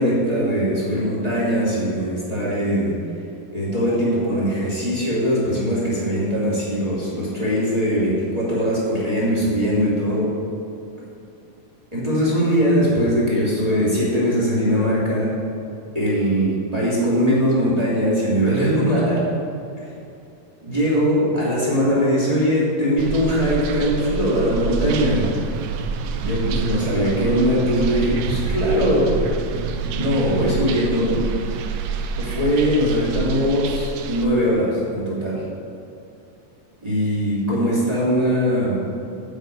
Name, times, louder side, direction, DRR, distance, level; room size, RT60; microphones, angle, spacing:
voice 1, 0.0-2.9 3.5-10.3 11.9-15.4 15.9-19.2 20.6-25.3 26.2-29.1 29.9-31.2 32.2-35.4 36.8-38.8, equal, 10° right, -7 dB, 2.2 m, -21 dB
sound 1, 23.0-34.3, right 5 dB, 85° right, 1.6 m, -27 dB
8.5 x 8.3 x 5.3 m, 2.7 s
omnidirectional pair, 3.9 m